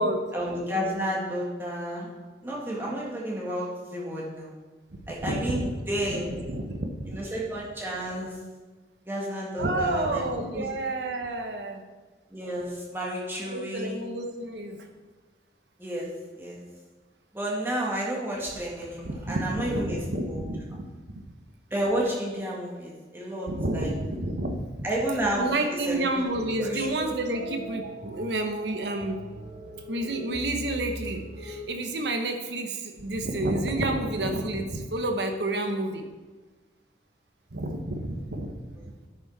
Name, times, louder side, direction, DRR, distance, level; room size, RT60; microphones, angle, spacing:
voice 1, 0.3-2.1 2.4-4.5 5.1-6.3 7.1-8.4 9.1-10.2 10.5-10.7 12.3-14.0 15.8-16.1 16.4-16.6 17.3-20.4 21.7-23.9 24.8-25.5 25.9-26.1 26.6-26.9 38.8-38.9, right 1 dB, 15° right, -4 dB, 1.8 m, -31 dB
voice 2, 4.9-5.7 6.1-7.2 9.6-11.8 13.4-14.9 19.0-21.2 23.5-24.9 25.3-29.2 29.9-36.0 37.5-38.9, right 1 dB, 80° right, 5 dB, 1.1 m, -30 dB
sound 1, 26.3-31.7, right 1 dB, 40° right, 1.7 m, -39 dB
10.5 x 6.3 x 4.1 m, 1.3 s
head